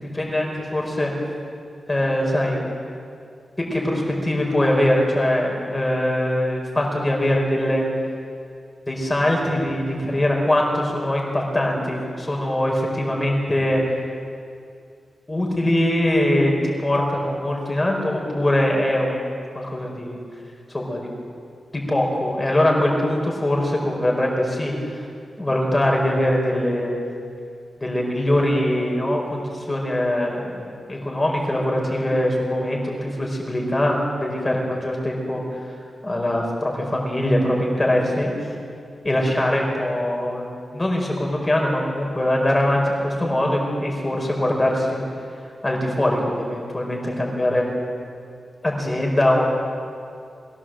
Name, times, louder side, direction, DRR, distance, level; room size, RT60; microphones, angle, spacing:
voice 1, 0.1-1.1 1.9-2.6 3.6-7.8 8.9-13.8 15.3-16.5 16.8-19.2 19.5-20.2 20.7-21.1 21.7-25.0 25.4-26.9 27.8-35.4 36.0-38.3 39.0-45.0 45.6-47.7 48.6-49.4, left 1 dB, 15° left, -1 dB, 4.6 m, -22 dB
21.5 x 16.0 x 7.7 m, 2.3 s
wide cardioid pair, 150°, 0 cm